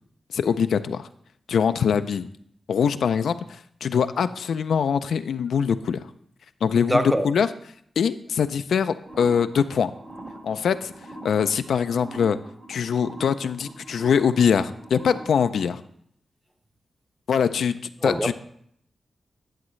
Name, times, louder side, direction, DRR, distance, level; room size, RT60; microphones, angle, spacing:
voice 1, 0.3-1.1 1.5-2.3 2.7-6.0 6.6-7.5 8.0-9.9 10.4-10.9 11.2-12.4 12.7-15.8 17.3-17.8 18.0-18.3, left 7 dB, 90° left, 0.3 m, -23 dB
voice 2, 6.9-7.3 18.0-18.3, equal, 10° right, 0.7 m, -23 dB
sound 1, 9.0-15.6, right 2 dB, 50° right, 1.6 m, -42 dB
11.0 x 7.1 x 3.1 m
cardioid pair, 80°, 0 cm